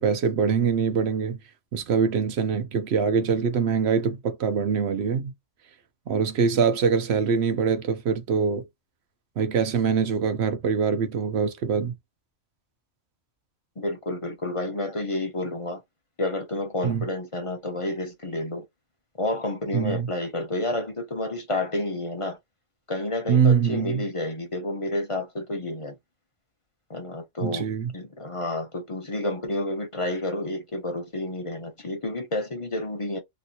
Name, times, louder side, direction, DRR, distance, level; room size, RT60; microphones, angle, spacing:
voice 1, 0.0-1.4 1.7-5.3 6.1-8.7 9.4-11.9 16.8-17.0 19.7-20.1 23.3-24.0 27.4-27.9, right 6 dB, 65° right, 0.8 m, -23 dB
voice 2, 13.8-15.8 16.2-18.6 19.2-22.4 22.9-26.0 26.9-27.7 27.9-33.2, left 2 dB, 30° left, 0.8 m, -30 dB
3.0 x 2.6 x 2.8 m
omnidirectional pair, 1.3 m